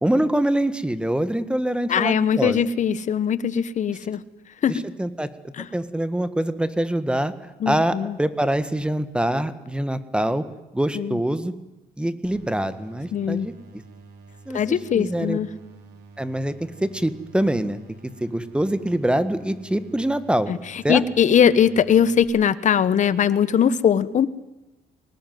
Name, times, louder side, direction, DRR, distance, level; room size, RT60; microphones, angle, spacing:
voice 1, 0.0-2.6 4.7-5.3 5.7-10.4 10.7-11.5 12.0-13.5 14.5-15.4 16.2-17.8 18.2-20.5 20.8-21.0, right 1 dB, 5° right, 13 dB, 1.6 m, -24 dB
voice 2, 1.9-4.2 4.6-4.7 5.6-5.7 7.6-8.2 10.9-11.2 13.1-13.5 14.5-15.5 20.5-20.6 20.9-24.3, left 8 dB, 45° left, 16 dB, 1.3 m, -20 dB
sound 1, 12.2-22.2, right 4 dB, 75° right, 6.1 m, -48 dB
24.0 x 19.5 x 9.4 m, 1.0 s
cardioid pair, 110°, 17 cm